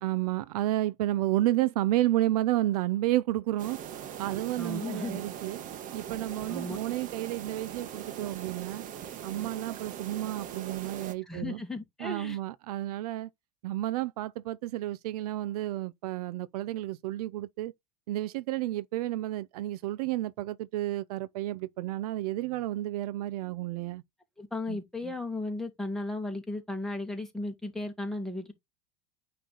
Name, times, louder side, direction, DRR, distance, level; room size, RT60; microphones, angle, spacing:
voice 1, 0.0-3.8 4.2-5.6 5.9-8.8 9.2-11.6 12.0-13.3 13.6-17.7 18.1-24.0 24.7-24.8, right 15 dB, 70° right, 0.6 m, -31 dB
sound 1, 3.6-11.1, right 9 dB, 40° right, 1.2 m, -41 dB
voice 2, 4.6-5.2 6.5-6.8 11.2-12.4 24.4-28.5, left 2 dB, ahead, 2.1 m, -35 dB
9.1 x 3.3 x 3.9 m
hypercardioid pair, 95°, 21 cm